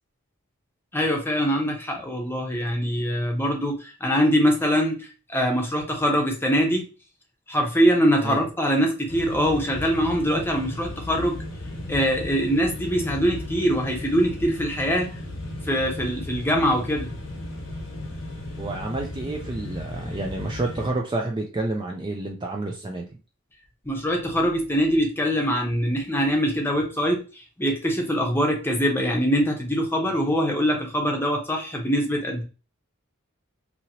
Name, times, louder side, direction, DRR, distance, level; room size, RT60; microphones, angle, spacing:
voice 1, 0.9-6.8 7.5-11.4 11.9-15.1 15.7-17.1 23.8-32.4, equal, 10° left, 0 dB, 0.7 m, -23 dB
sound 1, 9.1-20.9, left 1 dB, 75° left, 0.9 m, -35 dB
voice 2, 18.6-23.1, right 2 dB, 20° right, 1 dB, 0.3 m, -29 dB
2.8 x 2.8 x 2.8 m, 0.32 s
head